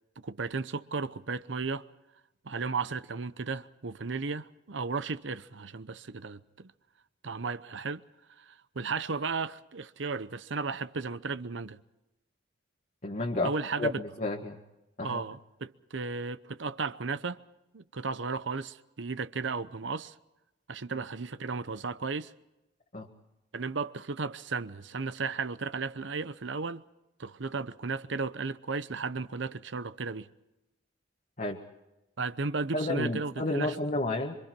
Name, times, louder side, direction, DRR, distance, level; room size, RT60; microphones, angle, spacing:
voice 1, 0.2-1.9 2.4-6.4 7.2-8.0 8.4-11.8 13.4-14.0 15.0-17.4 17.7-20.1 20.7-22.3 23.5-26.8 27.2-30.3 32.2-33.8, right 4 dB, 70° right, 0.8 m, -34 dB
voice 2, 13.0-14.6 15.0-15.2 22.9-23.1 31.4-31.6 32.7-34.4, left 2 dB, 40° left, 1.7 m, -31 dB
26.5 x 25.0 x 4.5 m
head